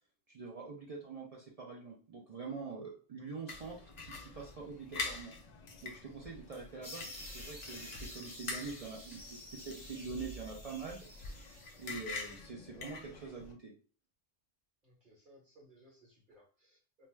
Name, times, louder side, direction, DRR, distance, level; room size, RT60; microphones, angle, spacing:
voice 1, 0.3-5.3 5.8-11.1 11.8-13.7, right 4 dB, 70° right, -2 dB, 0.3 m, -45 dB
sound 1, 3.5-13.5, left 3 dB, 60° left, 0.4 m, -46 dB
sound 2, 6.8-12.4, left 1 dB, 15° left, 0.9 m, -50 dB
voice 2, 14.8-17.1, equal, 45° right, -4 dB, 1.1 m, -63 dB
2.6 x 2.2 x 3.1 m, 0.39 s
omnidirectional pair, 1.3 m